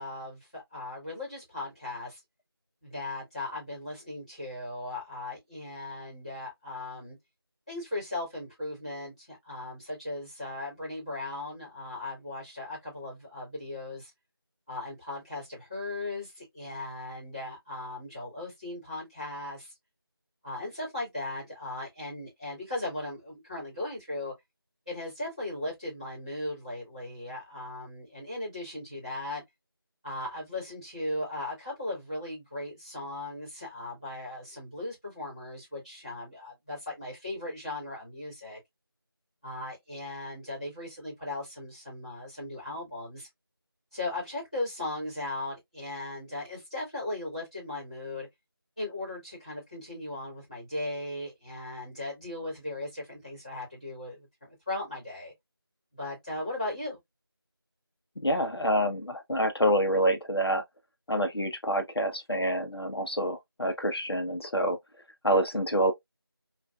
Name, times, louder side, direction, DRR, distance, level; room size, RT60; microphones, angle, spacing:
voice 1, 0.0-2.2 2.8-7.2 7.7-14.1 14.7-19.7 20.4-24.3 24.9-29.4 30.0-38.6 39.4-43.3 43.9-48.3 48.8-55.3 55.9-57.0, left 2 dB, 15° left, 1.4 m, -37 dB
voice 2, 58.2-60.6 61.1-64.8 65.2-65.9, equal, 85° left, 0.8 m, -27 dB
3.4 x 2.5 x 2.3 m
figure-of-eight pair, 180°, 13 cm